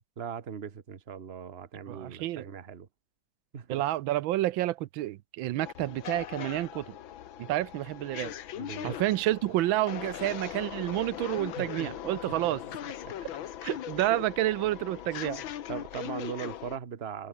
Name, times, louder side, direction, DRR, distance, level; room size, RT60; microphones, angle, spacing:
voice 1, 0.2-2.9 3.5-3.8 8.6-9.0 11.5-11.9 12.4-12.5 13.0-13.1 15.7-17.3, right 7 dB, 35° right, 1.4 m, -39 dB
voice 2, 1.9-2.5 3.7-6.9 7.4-8.3 8.8-12.6 13.6-15.4, right 15 dB, 85° right, 1.5 m, -29 dB
sound 1, 5.6-16.8, left 11 dB, 85° left, 1.9 m, -40 dB
omnidirectional pair, 2.1 m